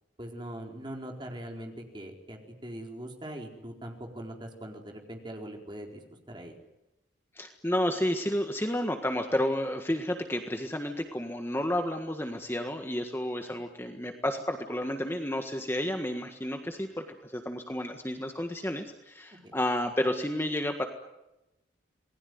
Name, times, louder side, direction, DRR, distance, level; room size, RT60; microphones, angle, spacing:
voice 1, 0.2-6.5 13.5-13.6 19.4-19.5, right 1 dB, 25° right, 2 dB, 4.5 m, -41 dB
voice 2, 7.3-20.8, left 1 dB, 10° left, 5 dB, 1.6 m, -31 dB
28.0 x 20.0 x 9.5 m, 0.95 s
head